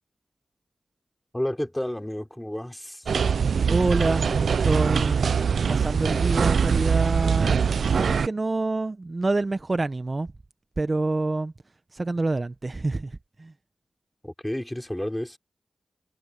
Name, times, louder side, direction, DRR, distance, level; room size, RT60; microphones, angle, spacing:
voice 1, 1.3-3.1 14.2-15.4, left 1 dB, 10° left, 5.5 m, -31 dB
sound 1, 3.1-8.3, right 6 dB, 80° right, 0.4 m, -23 dB
voice 2, 3.7-5.2 5.7-10.3 10.8-11.5 11.9-13.5, right 2 dB, 35° right, 0.8 m, -27 dB
cardioid pair, 70°, 0 cm